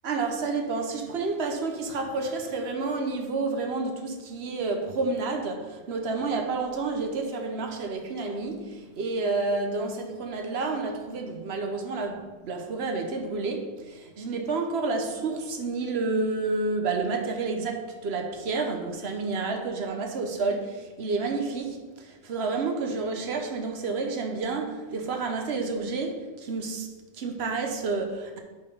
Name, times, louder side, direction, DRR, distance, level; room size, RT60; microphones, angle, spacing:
voice 1, 0.0-26.9 27.2-28.4, right 3 dB, 65° right, 1.0 m, -30 dB
5.3 x 4.5 x 5.3 m
omnidirectional pair, 1.2 m